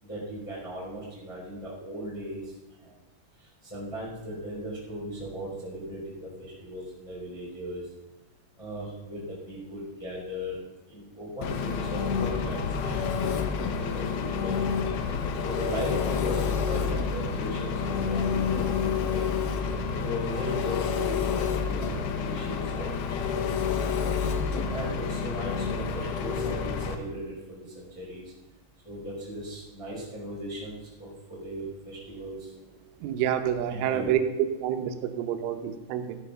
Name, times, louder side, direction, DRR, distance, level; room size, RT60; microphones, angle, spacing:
voice 1, 0.0-2.5 2.8-2.9 3.6-7.8 8.6-10.6 10.9-13.3 13.8-14.6 15.4-19.3 20.0-24.0 24.4-28.2 28.8-32.5 33.7-34.1, equal, 5° left, -6 dB, 3.9 m, -37 dB
Engine, 11.4-27.0, left 6 dB, 80° left, 2.1 m, -29 dB
voice 2, 33.0-36.2, right 9 dB, 80° right, 8 dB, 3.4 m, -28 dB
14.0 x 9.0 x 5.8 m, 1.1 s
omnidirectional pair, 5.8 m